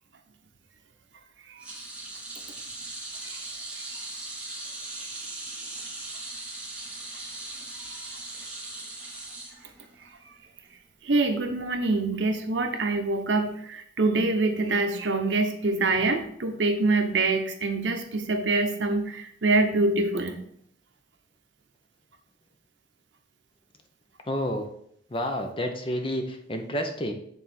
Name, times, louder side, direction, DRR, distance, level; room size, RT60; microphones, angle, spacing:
sound 1, 1.6-10.1 10.4-10.7 11.8-11.9, right 2 dB, 5° right, 1.3 m, -39 dB
voice 1, 11.0-20.4, right 3 dB, 85° right, 6 dB, 0.8 m, -25 dB
voice 2, 24.3-24.7 25.1-27.1, equal, 30° left, 5 dB, 0.7 m, -29 dB
8.1 x 3.6 x 4.3 m, 0.69 s
head